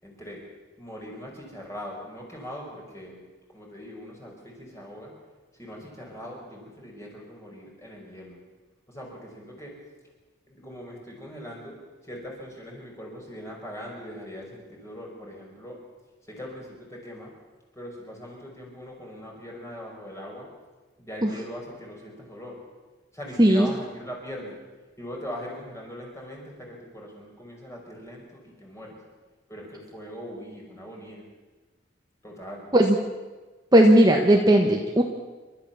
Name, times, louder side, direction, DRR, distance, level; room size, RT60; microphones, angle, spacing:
voice 1, 0.0-0.4 0.8-3.2 3.5-5.1 5.5-8.4 8.9-9.8 10.5-11.8 12.0-15.8 16.3-17.3 17.7-20.5 21.0-22.6 23.1-24.6 25.0-29.0 29.5-31.3 32.2-32.7, equal, 15° left, -1 dB, 5.4 m, -41 dB
voice 2, 33.7-35.0, right 1 dB, 20° right, 2 dB, 1.3 m, -17 dB
28.5 x 13.0 x 7.0 m, 1.3 s
head